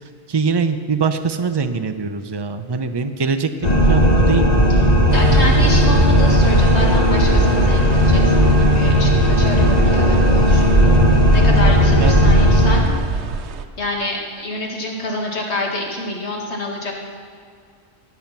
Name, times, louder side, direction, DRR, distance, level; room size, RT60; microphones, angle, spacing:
voice 1, 0.3-3.5 3.9-4.5 5.0-5.1 12.0-12.2, right 5 dB, 30° right, 8 dB, 0.6 m, -22 dB
sound 1, 3.6-12.8, equal, 35° left, 1.7 m, -14 dB
voice 2, 5.1-10.9 11.3-12.8 13.8-16.9, left 2 dB, 80° left, -1 dB, 2.4 m, -27 dB
sound 2, 5.1-13.7, right 6 dB, 85° right, 1.0 m, -26 dB
20.0 x 7.1 x 5.9 m, 2.1 s
omnidirectional pair, 1.1 m